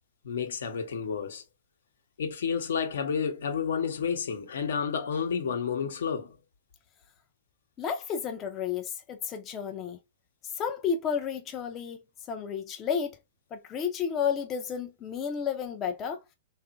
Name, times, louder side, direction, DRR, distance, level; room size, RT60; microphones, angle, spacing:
voice 1, 0.2-1.4 2.2-6.4, left 6 dB, 75° left, 0.8 m, -30 dB
voice 2, 7.8-10.0 10.5-12.0 12.3-13.2 13.5-16.2, left 7 dB, 30° left, 0.4 m, -31 dB
2.8 x 2.4 x 2.4 m
hypercardioid pair, 125°, 0 cm